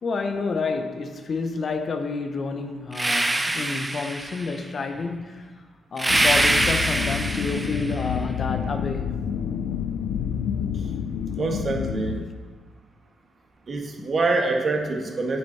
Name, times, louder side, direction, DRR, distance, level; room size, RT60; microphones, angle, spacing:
voice 1, 0.0-5.5 5.9-9.1 12.1-12.3, left 4 dB, 45° left, 0.8 m, -29 dB
sound 1, 2.9-4.6 6.0-8.0, right 1 dB, 15° right, 0.8 m, -24 dB
sound 2, 6.1-12.1, left 7 dB, 80° left, 0.5 m, -28 dB
voice 2, 11.4-12.2 13.7-15.4, right 3 dB, 45° right, 1.7 m, -25 dB
8.8 x 8.7 x 4.2 m
cardioid pair, 95°, 0 cm